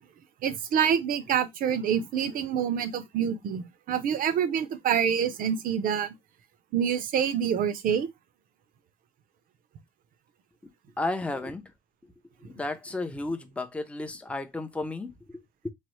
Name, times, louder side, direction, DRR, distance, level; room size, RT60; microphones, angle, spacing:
voice 1, 0.4-6.1 6.7-8.1, right 8 dB, 55° right, 0.5 m, -26 dB
voice 2, 11.0-11.6 12.4-15.7, left 2 dB, 5° left, 0.4 m, -33 dB
3.0 x 2.0 x 3.0 m
cardioid pair, 110°, 17 cm